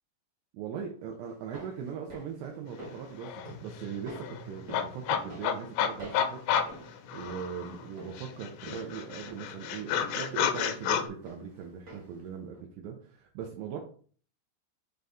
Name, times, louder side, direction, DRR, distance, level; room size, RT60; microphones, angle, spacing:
voice 1, 0.5-3.3 3.6-6.4 7.1-13.8, right 7 dB, 80° right, 1 dB, 2.7 m, -40 dB
sound 1, 1.2-12.3 12.5-12.6, right 1 dB, 60° right, 0.9 m, -49 dB
sound 2, 2.9-3.0 3.2-7.8 8.2-11.1, left 8 dB, 85° left, 2.8 m, -31 dB
6.7 x 4.0 x 3.5 m, 0.44 s
omnidirectional pair, 4.9 m